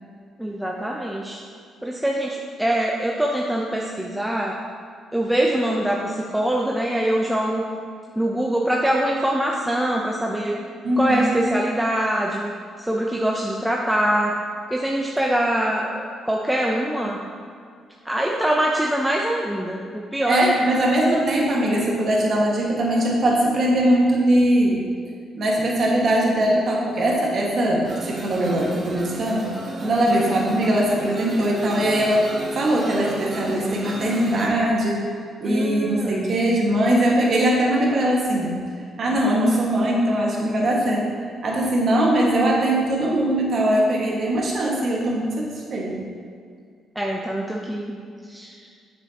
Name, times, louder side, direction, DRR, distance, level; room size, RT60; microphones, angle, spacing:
voice 1, 0.4-1.4 1.8-4.6 5.1-7.7 8.2-10.6 11.0-12.5 12.8-14.4 14.7-17.2 18.0-20.5 35.4-36.4 47.0-48.0 48.3-48.7, right 1 dB, 5° right, -2 dB, 0.6 m, -23 dB
voice 2, 10.8-11.4 20.3-24.8 25.4-29.5 29.8-32.3 32.5-35.1 35.4-38.6 39.0-41.1 41.4-46.0, right 1 dB, 50° right, -3 dB, 1.6 m, -21 dB
sound 1, 27.8-34.5, right 2 dB, 35° right, 1.1 m, -34 dB
7.4 x 6.2 x 2.9 m, 2.2 s
cardioid pair, 90°, 0 cm